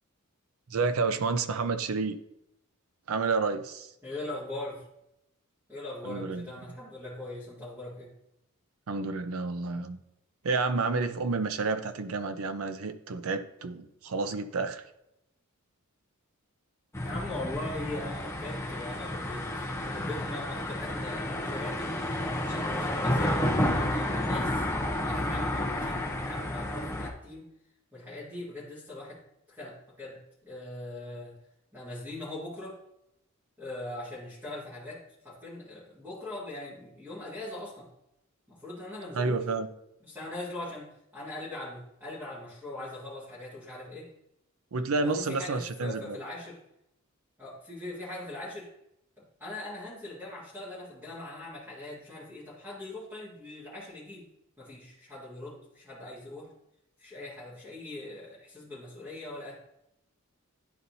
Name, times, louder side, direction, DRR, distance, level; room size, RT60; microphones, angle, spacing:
voice 1, 0.7-2.2 3.1-3.9 6.0-6.5 8.9-10.0 10.4-14.8 39.1-39.7 44.7-46.2, right 4 dB, 70° right, 10 dB, 0.5 m, -30 dB
voice 2, 4.0-4.8 5.7-8.1 17.0-21.9 22.5-24.6 25.0-27.4 27.9-29.2 29.5-31.3 31.7-32.8 33.6-37.9 38.5-39.4 40.0-44.1 45.0-46.6 47.4-48.7 49.2-54.3 54.6-56.5 57.0-59.6, left 2 dB, 10° right, -9 dB, 1.7 m, -41 dB
sound 1, 16.9-27.1, left 1 dB, 15° left, 0.7 m, -31 dB
10.5 x 4.1 x 2.7 m, 0.82 s
head